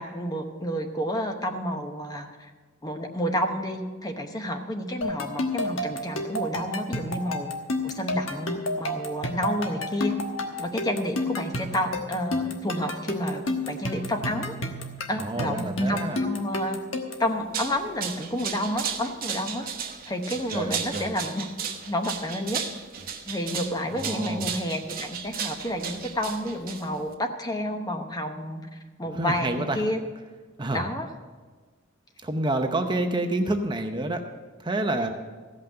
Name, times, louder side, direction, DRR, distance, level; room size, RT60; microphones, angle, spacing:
voice 1, 0.0-2.5 2.8-7.5 7.8-10.1 10.6-14.5 15.1-16.8 17.2-19.7 20.1-21.5 21.9-22.6 23.2-30.0 30.7-31.1, equal, 20° left, 5 dB, 0.9 m, -30 dB
sound 1, 5.0-17.3, left 1 dB, 75° left, 1.3 m, -31 dB
voice 2, 15.2-16.2 20.5-21.1 23.9-24.5 29.1-29.8 30.6-30.8 32.2-34.2 34.6-35.1, right 2 dB, 25° right, 5 dB, 0.8 m, -28 dB
sound 2, 17.3-27.1, right 7 dB, 45° right, 1.1 m, -34 dB
15.0 x 5.7 x 7.8 m, 1.4 s
head